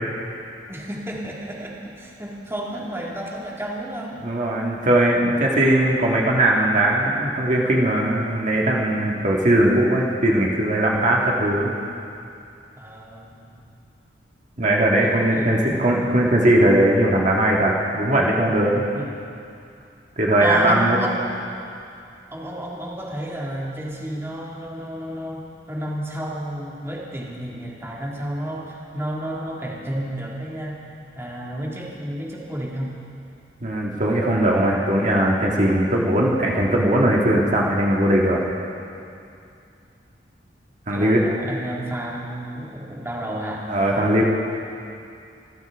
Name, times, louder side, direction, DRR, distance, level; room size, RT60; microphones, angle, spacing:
voice 1, 0.7-4.2 12.8-13.7 15.0-15.8 18.9-19.1 20.4-21.6 22.3-30.8 31.2-33.0 40.9-43.7, right 1 dB, 15° right, -3 dB, 1.9 m, -31 dB
voice 2, 4.2-11.7 14.6-18.8 20.2-21.0 33.6-38.4 40.9-41.2 43.7-44.2, right 1 dB, 45° right, -2 dB, 1.6 m, -19 dB
25.5 x 14.5 x 3.5 m, 2.6 s
head